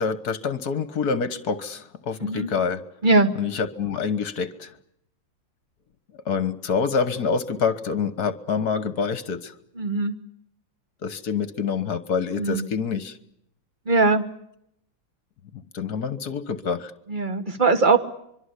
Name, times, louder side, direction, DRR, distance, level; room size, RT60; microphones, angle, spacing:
voice 1, 0.0-2.8 3.4-4.7 6.3-9.5 11.0-13.2 15.7-16.9, left 5 dB, 50° left, 14 dB, 1.7 m, -26 dB
voice 2, 9.8-10.2 12.4-12.7 13.9-14.2 17.1-18.0, right 3 dB, 25° right, 10 dB, 1.5 m, -20 dB
25.0 x 23.5 x 8.2 m, 0.75 s
omnidirectional pair, 2.3 m